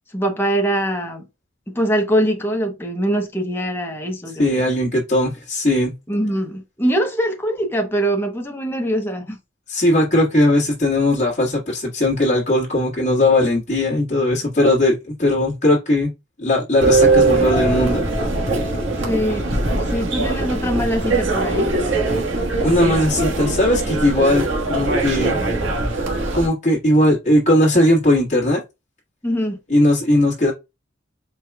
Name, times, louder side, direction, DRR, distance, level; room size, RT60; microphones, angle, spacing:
voice 1, 0.1-1.2 1.7-4.7 6.1-9.4 19.0-19.6 19.9-21.7 29.2-29.6, equal, 10° left, 0.7 m, -23 dB
voice 2, 4.4-5.9 9.7-16.1 16.4-18.0 22.6-25.4 26.3-28.6 29.7-30.5, left 1 dB, 40° left, 1.4 m, -18 dB
sound 1, 16.8-26.5, right 2 dB, 65° right, 1.3 m, -20 dB
4.6 x 2.3 x 3.3 m
head